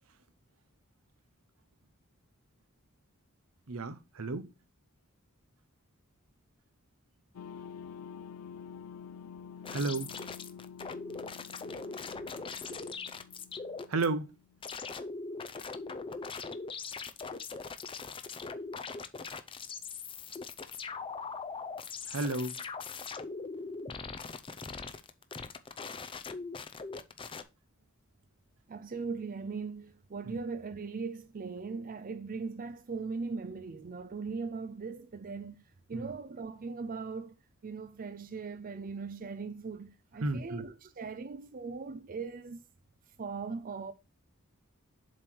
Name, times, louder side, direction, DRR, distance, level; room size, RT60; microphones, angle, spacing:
voice 1, 3.7-4.5 9.7-10.1 11.7-12.8 13.9-14.3 22.1-22.5 30.2-30.4 35.9-36.1 40.2-40.6, right 3 dB, 75° right, 0.9 m, -34 dB
sound 1, 7.3-14.8, left 7 dB, 80° left, 0.4 m, -49 dB
sound 2, 9.6-14.1 14.6-27.4, left 4 dB, 25° left, 0.5 m, -41 dB
voice 2, 28.7-37.4 37.6-42.6 43.2-43.9, right 4 dB, 40° right, 0.5 m, -39 dB
7.5 x 3.2 x 6.1 m
head